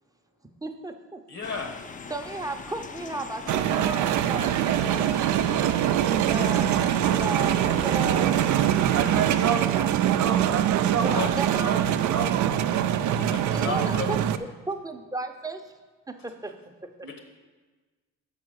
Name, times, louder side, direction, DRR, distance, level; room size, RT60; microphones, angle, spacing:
voice 1, 0.6-1.2 2.1-5.3 6.2-8.4 9.7-9.9 11.0-11.9 13.5-14.2 14.7-15.7 16.1-16.6 16.8-17.1, right 2 dB, 10° right, 5 dB, 0.6 m, -34 dB
voice 2, 1.3-1.7 6.3-6.6 11.1-11.3 13.1-14.1 17.0-17.2, left 4 dB, 60° left, 4 dB, 1.2 m, -34 dB
sound 1, 1.4-9.5, left 5 dB, 25° left, 0.4 m, -41 dB
sound 2, 3.5-14.4, right 11 dB, 75° right, 0.4 m, -23 dB
voice 3, 8.9-13.0, right 7 dB, 55° right, 6 dB, 0.9 m, -31 dB
6.7 x 5.0 x 6.4 m, 1.3 s
cardioid pair, 90°, 30 cm